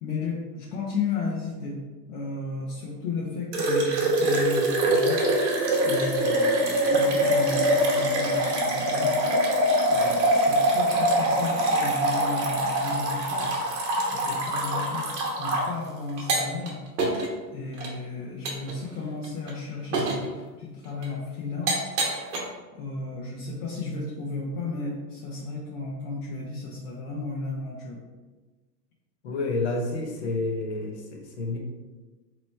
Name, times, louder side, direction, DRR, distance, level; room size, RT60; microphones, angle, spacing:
voice 1, 0.0-1.8 2.1-5.3 5.8-9.2 9.9-13.5 14.1-16.8 17.5-20.2 20.5-21.9 22.7-28.0, left 3 dB, 65° left, -4 dB, 0.9 m, -34 dB
sound 1, 3.5-15.7 16.2-16.7 17.0-17.3 17.8-17.9 18.4-18.7 19.2-19.5 19.9-20.2 21.0-21.1 21.7-22.4, right 1 dB, 45° right, 1.0 m, -24 dB
voice 2, 29.2-31.6, left 2 dB, 40° left, 1 dB, 0.6 m, -29 dB
4.2 x 3.0 x 3.2 m, 1.3 s
supercardioid pair, 180°, 49 cm